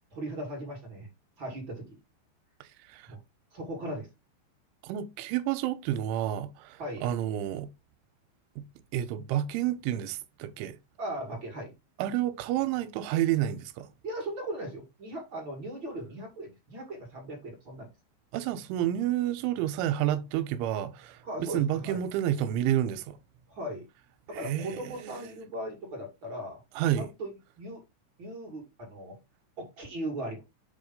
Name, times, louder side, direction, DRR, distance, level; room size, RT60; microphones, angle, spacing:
voice 1, 0.1-1.1 1.4-2.0 3.1-3.2 3.5-4.1 6.8-7.1 11.0-11.7 14.0-17.9 21.2-22.0 23.5-23.9 24.3-26.6 26.9-27.3 27.6-27.8 28.2-29.2 29.6-30.4, right 1 dB, 40° right, 1.7 m, -38 dB
voice 2, 2.6-3.1 4.8-7.7 8.6-8.7 8.9-10.8 12.0-13.9 18.3-23.2 24.3-25.3 26.8-27.1, right 12 dB, 80° right, 3.0 m, -30 dB
7.9 x 3.1 x 5.3 m
omnidirectional pair, 5.6 m